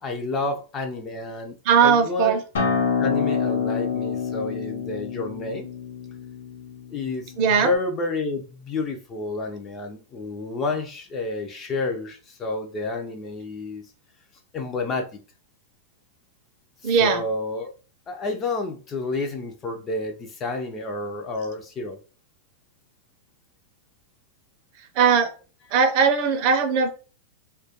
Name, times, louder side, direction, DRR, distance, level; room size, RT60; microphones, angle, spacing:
voice 1, 0.0-1.6 1.8-2.4 3.0-5.7 6.9-13.8 14.5-15.1 16.8-17.7 18.1-22.0, left 2 dB, 20° left, 0.3 m, -30 dB
voice 2, 1.7-2.4 7.4-7.7 16.8-17.2 25.0-25.3 25.7-26.9, right 6 dB, 40° right, 0.5 m, -19 dB
Acoustic guitar, 2.5-7.7, left 6 dB, 75° left, 0.6 m, -27 dB
2.2 x 2.2 x 2.7 m
supercardioid pair, 165°, 0 cm